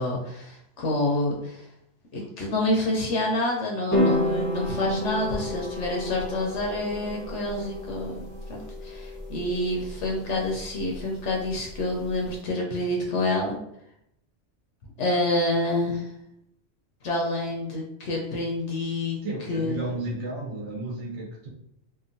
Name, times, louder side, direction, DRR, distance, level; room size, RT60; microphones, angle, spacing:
voice 1, 0.0-1.6 2.1-13.6 15.0-16.1 17.0-19.2 19.5-19.8, left 1 dB, 70° left, -1 dB, 0.9 m, -28 dB
sound 1, 3.9-12.3, left 1 dB, 35° left, 0.7 m, -31 dB
voice 2, 19.2-21.5, right 2 dB, 70° right, -4 dB, 1.1 m, -33 dB
2.9 x 2.2 x 2.5 m, 0.76 s
omnidirectional pair, 1.3 m